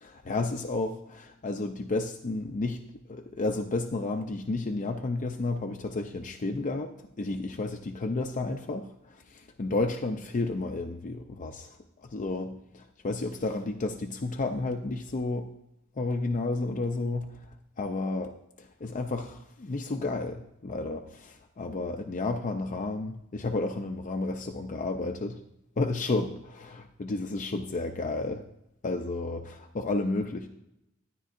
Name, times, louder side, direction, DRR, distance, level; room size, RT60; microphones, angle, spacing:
voice 1, 0.0-2.8 3.1-15.5 16.0-25.4 25.8-28.4 28.8-30.5, left 2 dB, 35° left, 4 dB, 0.5 m, -32 dB
13.0 x 10.0 x 2.5 m, 0.83 s
head